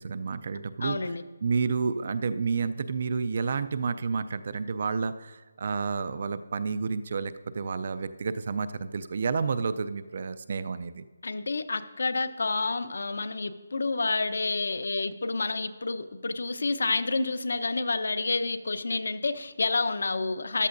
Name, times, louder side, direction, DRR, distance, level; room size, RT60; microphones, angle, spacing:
voice 1, 0.0-1.1 1.4-11.0, right 5 dB, 40° right, 13 dB, 0.4 m, -30 dB
voice 2, 0.8-1.2 11.2-20.7, left 3 dB, 65° left, 11 dB, 0.7 m, -29 dB
14.0 x 11.5 x 2.6 m, 1.4 s
hypercardioid pair, 175°, 0 cm